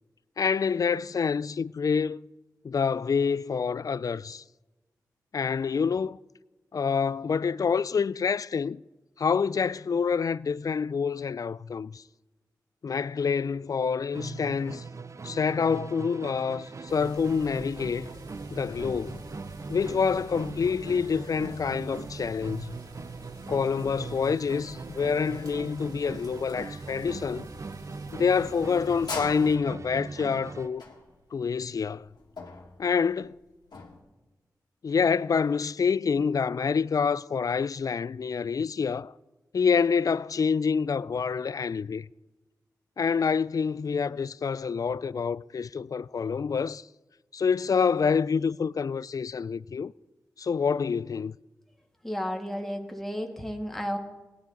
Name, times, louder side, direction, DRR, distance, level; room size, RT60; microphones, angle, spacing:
voice 1, 0.4-2.2 2.6-4.4 5.3-6.2 6.7-8.8 9.2-12.0 12.8-14.8 15.2-18.1 18.5-19.2 19.7-22.8 23.5-27.5 28.1-30.8 31.3-32.1 32.8-33.4 34.8-39.1 39.5-42.1 43.0-46.9 47.3-49.9 50.4-51.4, left 6 dB, 55° left, 0.3 m, -27 dB
Musical instrument, 14.1-30.8, right 4 dB, 40° right, 0.4 m, -41 dB
sound 1, 16.9-29.6, equal, 70° right, 5.1 m, -48 dB
sound 2, 29.1-34.0, left 4 dB, 75° left, 1.9 m, -41 dB
voice 2, 52.0-54.0, equal, 5° left, 1.8 m, -32 dB
17.5 x 11.0 x 4.0 m
cardioid pair, 45°, 7 cm